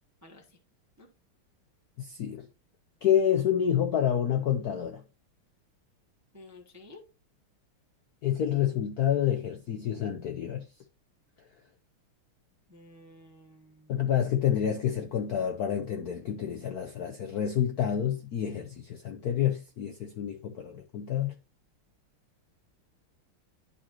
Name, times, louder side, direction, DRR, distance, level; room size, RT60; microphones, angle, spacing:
voice 1, 0.2-0.6 1.0-1.1 6.3-7.0 12.7-14.1, left 2 dB, 20° right, 0.4 m, -52 dB
voice 2, 2.0-2.5 3.0-5.0 8.2-10.6 13.9-21.3, left 9 dB, 70° left, 0.9 m, -28 dB
11.5 x 4.2 x 2.9 m
omnidirectional pair, 2.4 m